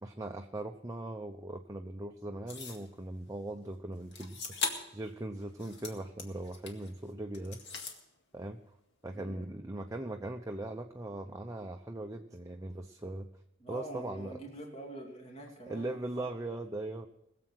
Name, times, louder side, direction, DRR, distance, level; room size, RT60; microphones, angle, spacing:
voice 1, 0.0-4.5 4.9-7.6 8.3-8.6 9.0-13.3 13.7-14.4 15.7-17.1, right 1 dB, 15° right, 4 dB, 0.7 m, -39 dB
sound 1, 2.5-2.9 4.1-5.0 5.4-6.9 7.3-8.0, left 4 dB, 60° left, 2.0 m, -39 dB
voice 2, 9.1-9.5 13.6-16.3, right 1 dB, 30° left, 0 dB, 2.6 m, -45 dB
21.0 x 7.7 x 6.2 m, 0.78 s
head